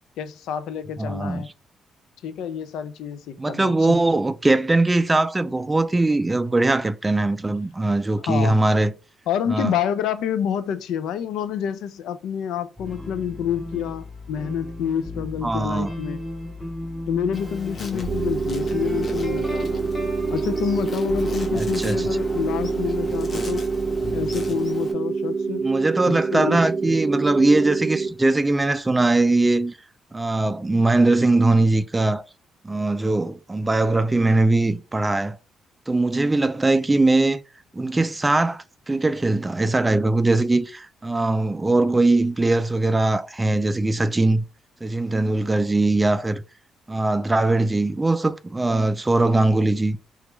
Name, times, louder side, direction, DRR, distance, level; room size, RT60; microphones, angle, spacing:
voice 1, 0.2-1.5 2.2-4.0 8.3-8.5 9.3-16.2 17.1-19.8 20.3-23.6 24.1-25.7 26.0-26.9, left 8 dB, 85° left, 0.3 m, -28 dB
voice 2, 1.0-1.5 3.4-8.9 9.5-9.7 15.4-15.9 21.5-22.0 25.6-29.8 30.1-32.2 32.6-35.4 35.9-37.4 37.7-44.4 44.8-46.4 46.9-50.0, right 2 dB, 15° right, 0.3 m, -21 dB
sound 1, 12.8-24.5, equal, 10° left, 1.5 m, -34 dB
Insect, 17.3-24.9, left 2 dB, 35° left, 0.8 m, -39 dB
sound 2, 18.1-28.1, right 4 dB, 85° right, 0.5 m, -26 dB
2.9 x 2.3 x 3.1 m
cardioid pair, 90°, 0 cm